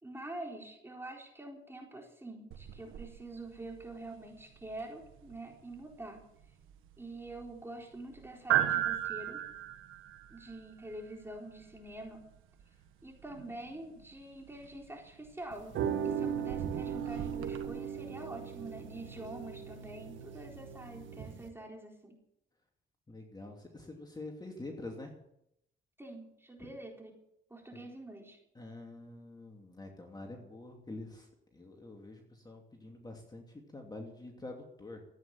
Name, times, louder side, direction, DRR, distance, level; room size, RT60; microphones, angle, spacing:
voice 1, 0.0-6.2 7.0-9.4 10.3-12.2 13.0-15.8 16.0-22.2 26.0-27.1 27.5-28.4, right 2 dB, 10° right, 0 dB, 4.2 m, -46 dB
sound 1, 2.5-17.7, right 12 dB, 90° right, 1.6 m, -39 dB
sound 2, 15.5-21.5, right 8 dB, 75° right, 1.9 m, -38 dB
voice 2, 23.1-25.1 26.6-26.7 27.7-27.8 28.5-35.0, left 2 dB, 20° left, 2 dB, 2.8 m, -46 dB
14.5 x 9.6 x 9.1 m, 0.78 s
cardioid pair, 90°, 20 cm